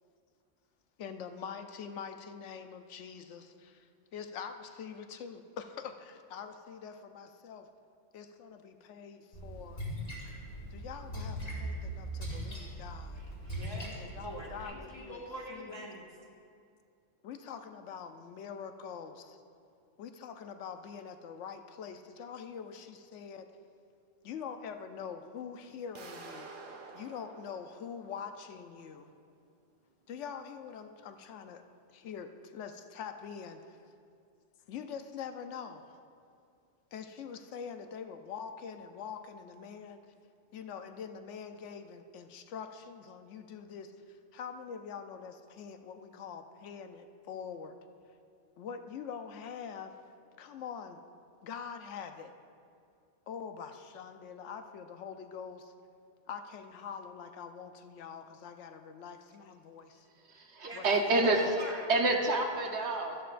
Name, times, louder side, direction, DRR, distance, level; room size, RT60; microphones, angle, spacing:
voice 1, 1.0-7.7 8.1-9.8 10.7-13.2 14.0-15.2 15.5-15.8 17.2-19.4 20.0-23.5 24.2-26.5 26.9-29.1 30.1-33.8 34.7-36.0 36.9-40.0 40.5-47.8 48.6-49.9 50.4-51.0 51.4-52.3 53.3-55.7 56.3-60.1 60.7-61.3, left 7 dB, 75° left, 7 dB, 1.0 m, -44 dB
Splash splatter, 9.3-14.6, equal, 50° left, 2.5 m, -40 dB
voice 2, 13.5-13.8 14.2-16.1 60.6-61.8, equal, 20° left, -5 dB, 1.3 m, -42 dB
sound 1, 25.9-28.8, right 3 dB, 50° right, 0.9 m, -50 dB
voice 3, 60.2-61.4 61.9-63.2, right 2 dB, 65° right, 2 dB, 1.3 m, -28 dB
13.5 x 11.5 x 2.5 m, 2.4 s
omnidirectional pair, 1.2 m